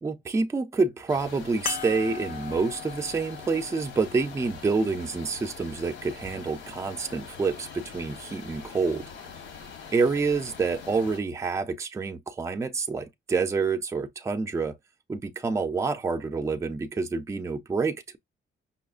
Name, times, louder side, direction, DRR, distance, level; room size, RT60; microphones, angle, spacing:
voice 1, 0.0-9.0 9.9-14.8 15.1-18.2, right 4 dB, 15° right, 0.4 m, -28 dB
sound 1, 1.1-11.2, left 6 dB, 75° left, 1.1 m, -44 dB
sound 2, 1.7-6.5 7.2-7.3 9.5-9.6, left 8 dB, 40° left, 0.5 m, -40 dB
5.5 x 2.1 x 2.4 m
cardioid pair, 175°, 20 cm